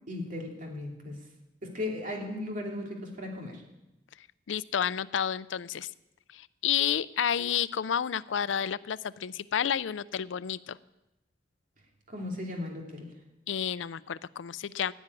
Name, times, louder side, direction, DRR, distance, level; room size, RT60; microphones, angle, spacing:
voice 1, 0.1-1.2 1.6-3.6 12.1-13.1, left 2 dB, 45° right, 0 dB, 2.8 m, -36 dB
voice 2, 4.5-5.9 6.3-10.8 13.5-14.9, left 9 dB, 90° left, 18 dB, 0.5 m, -30 dB
15.5 x 7.2 x 9.8 m, 0.94 s
head